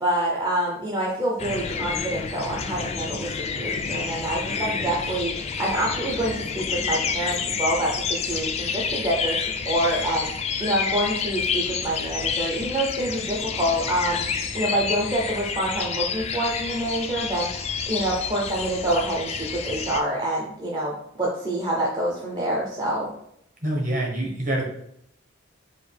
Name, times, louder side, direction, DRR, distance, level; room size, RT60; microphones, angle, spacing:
voice 1, 0.0-5.3 5.6-10.3 10.6-14.3 14.5-23.1, right 1 dB, 20° right, -4 dB, 0.5 m, -27 dB
sound 1, 1.4-20.0, left 6 dB, 30° left, 0.3 m, -29 dB
voice 2, 23.6-24.7, right 1 dB, 40° right, 0 dB, 1.1 m, -26 dB
4.8 x 2.4 x 3.3 m, 0.73 s
head